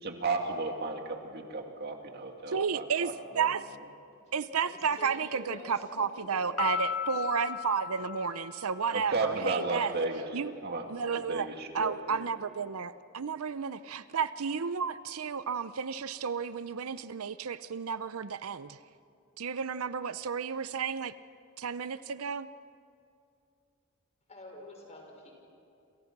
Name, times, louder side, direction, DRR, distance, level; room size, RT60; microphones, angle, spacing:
voice 1, 0.0-3.5 8.9-10.2 10.6-10.9 11.3-12.2, right 3 dB, 50° right, 3 dB, 2.3 m, -33 dB
voice 2, 2.5-3.7 4.3-9.9 10.3-10.6 10.9-11.5 11.7-18.8 19.4-21.1 21.6-22.5, right 6 dB, 80° right, 14 dB, 0.7 m, -32 dB
voice 3, 4.7-6.7 24.3-25.3, left 1 dB, 30° left, 1 dB, 5.9 m, -47 dB
Piano, 6.6-9.1, left 7 dB, 75° left, 1.3 m, -36 dB
28.0 x 28.0 x 6.1 m, 2.5 s
head